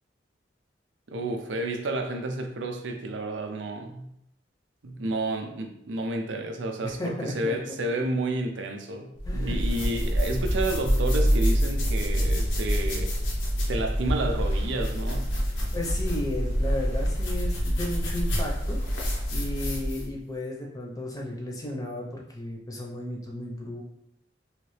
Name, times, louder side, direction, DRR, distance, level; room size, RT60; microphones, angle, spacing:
voice 1, 1.1-4.1 4.8-13.1 13.7-15.3, right 2 dB, 85° right, 0.5 m, -31 dB
voice 2, 6.8-7.5 9.2-9.6 10.0-10.2 15.7-19.0 19.3-23.8, left 1 dB, 20° left, 0.7 m, -34 dB
sound 1, 9.2-20.1, equal, 85° left, 0.9 m, -26 dB
3.2 x 2.9 x 3.1 m
head